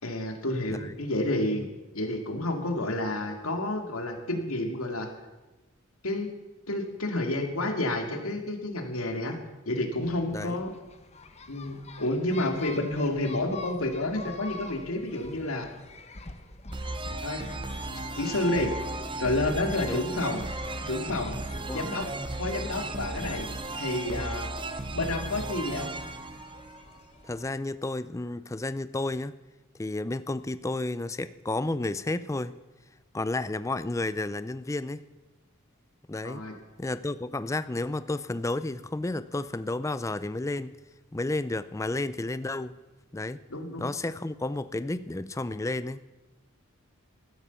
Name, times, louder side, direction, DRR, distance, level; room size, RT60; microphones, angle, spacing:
voice 1, 0.0-1.7 1.9-5.1 6.0-6.3 6.7-9.4 9.7-10.7 11.5-15.7 17.2-17.4 17.9-18.7 19.2-20.4 20.9-21.3 21.7-22.1 22.4-23.5 23.8-24.5 24.9-25.9 36.2-36.5 43.5-43.9, left 1 dB, 85° left, 4 dB, 2.2 m, -30 dB
sound 1, 10.0-27.5, left 3 dB, 30° left, 1.2 m, -48 dB
voice 2, 10.3-10.6 19.8-20.0 21.7-21.8 24.1-24.3 27.2-29.3 29.8-32.6 33.1-35.0 36.1-36.4 36.8-40.8 41.1-42.8 43.1-43.4 43.8-46.0, left 2 dB, 15° left, 14 dB, 0.4 m, -32 dB
sound 2, 16.7-27.3, right 2 dB, 25° right, 0.9 m, -35 dB
15.0 x 12.0 x 7.0 m, 1.1 s
head